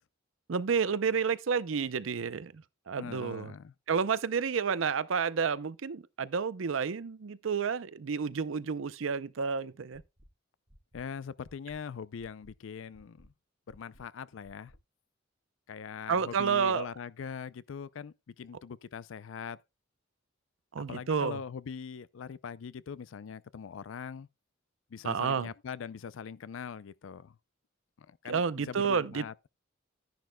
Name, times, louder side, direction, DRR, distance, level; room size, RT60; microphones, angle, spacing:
voice 1, 0.5-3.5 3.9-10.0 16.1-16.9 20.7-21.4 25.0-25.5 28.3-29.2, right 6 dB, 80° right, 0.5 m, -30 dB
voice 2, 3.0-3.7 10.9-13.3 13.7-14.7 15.7-19.6 20.9-24.3 24.9-27.4 28.1-29.5, left 6 dB, 75° left, 0.4 m, -42 dB
sound 1, 9.9-10.3 10.7-11.0 11.4-11.8 12.2-12.5 12.9-13.3 13.7-14.0 14.4-14.8, equal, 30° right, 3.5 m, -57 dB
11.5 x 10.5 x 2.2 m
head